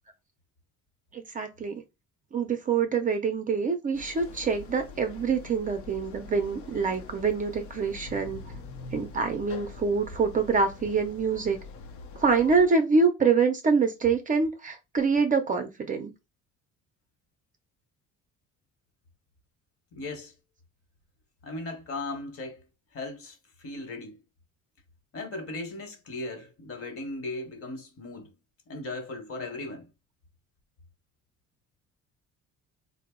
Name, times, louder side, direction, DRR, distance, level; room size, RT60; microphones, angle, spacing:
voice 1, 1.1-1.8 2.3-8.4 8.9-11.6 12.2-16.1, right 5 dB, 30° right, 0.5 m, -25 dB
sound 1, 3.9-12.7, left 4 dB, 75° left, 0.7 m, -44 dB
voice 2, 19.9-20.3 21.4-22.6 22.9-24.2 25.1-28.3 28.7-29.9, left 2 dB, 50° left, 1.0 m, -37 dB
3.7 x 2.0 x 3.6 m
cardioid pair, 150°, 29 cm